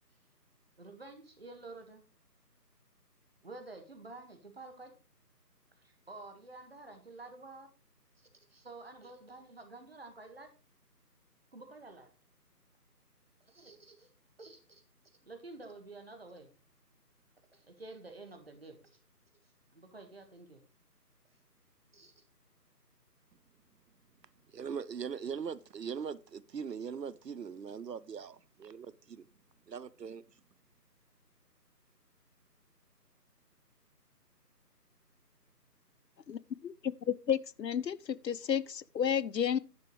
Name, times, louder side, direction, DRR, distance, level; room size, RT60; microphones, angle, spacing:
voice 1, 0.8-2.0 3.4-4.9 5.8-7.7 8.2-10.5 11.5-12.1 13.4-14.1 14.4-14.8 15.2-16.5 17.5-19.0 19.7-20.6 21.3-21.4 21.9-22.2, right 3 dB, 35° right, 1.7 m, -50 dB
voice 2, 24.5-29.2 29.7-30.2, right 6 dB, 80° right, 0.8 m, -41 dB
voice 3, 37.3-39.6, left 8 dB, 85° left, 0.7 m, -31 dB
10.5 x 9.2 x 3.1 m
figure-of-eight pair, 170°, 49 cm